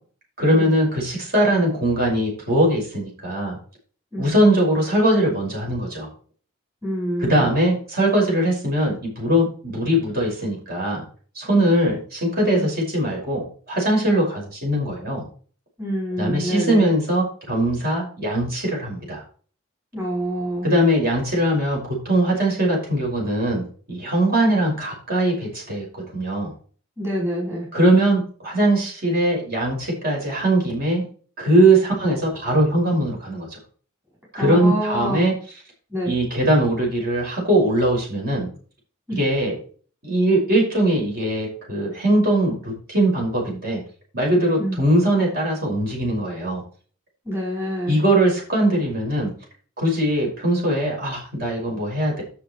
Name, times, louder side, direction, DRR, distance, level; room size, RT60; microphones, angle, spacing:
voice 1, 0.4-3.6 4.2-6.1 7.2-11.0 11.3-15.3 16.2-19.2 20.6-25.9 26.1-26.5 27.7-31.0 31.4-33.6 34.3-35.3 36.0-38.5 39.1-39.6 40.0-43.8 44.1-46.6 47.9-49.3 49.8-52.2, right 1 dB, 45° right, -2 dB, 5.8 m, -21 dB
voice 2, 6.8-7.5 12.6-12.7 14.1-14.2 15.8-16.9 19.9-20.7 27.0-27.7 34.4-35.2 35.9-36.1 39.1-39.2 44.6-44.8 47.3-47.9, equal, 10° right, -5 dB, 4.7 m, -26 dB
11.5 x 6.7 x 4.5 m, 0.42 s
head